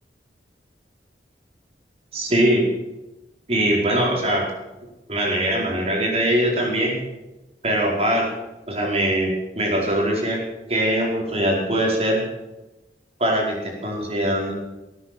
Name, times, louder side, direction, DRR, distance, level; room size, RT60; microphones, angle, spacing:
voice 1, 2.1-2.7 3.5-4.5 5.1-7.0 7.6-8.3 8.7-10.4 10.7-12.2 13.2-14.5, right 1 dB, 35° right, -2 dB, 5.0 m, -22 dB
19.0 x 9.7 x 7.7 m, 1.0 s
head